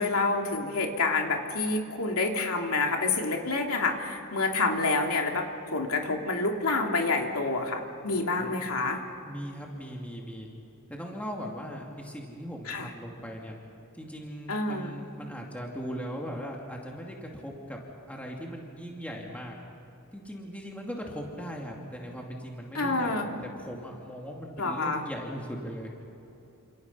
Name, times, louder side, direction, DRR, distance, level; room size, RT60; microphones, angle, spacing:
voice 1, 0.0-5.5 5.7-9.0 12.7-12.9 14.5-14.9 22.7-23.3 24.6-25.0, left 3 dB, 75° left, 2 dB, 3.1 m, -28 dB
voice 2, 9.2-10.5 10.9-13.6 13.9-17.8 18.1-19.6 20.1-25.9, equal, 5° left, -1 dB, 2.6 m, -39 dB
29.0 x 27.5 x 5.6 m, 2.8 s
head